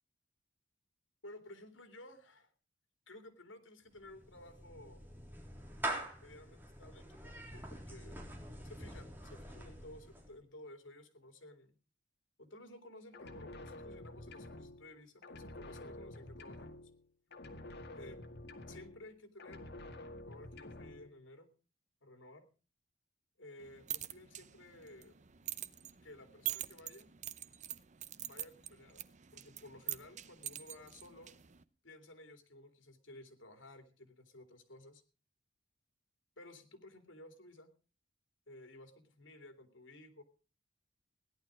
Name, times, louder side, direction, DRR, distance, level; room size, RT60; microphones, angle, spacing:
voice 1, 1.2-2.5 3.1-5.1 6.2-8.2 8.6-11.8 12.4-16.9 17.9-18.2 18.7-19.7 20.2-21.5 22.0-22.5 23.4-25.2 26.0-27.1 28.1-29.1 29.3-31.3 31.8-35.0 36.4-37.7 38.5-40.2, left 1 dB, 80° left, 7 dB, 2.8 m, -55 dB
Clapping / Meow, 3.9-10.4, right 1 dB, 10° right, 3.5 m, -45 dB
sound 1, 13.1-15.0 15.2-17.1 17.3-19.1 19.4-21.1, left 1 dB, 60° left, 2.1 m, -49 dB
sound 2, 23.6-31.6, right 12 dB, 40° right, 0.7 m, -45 dB
17.0 x 11.5 x 5.0 m, 0.36 s
head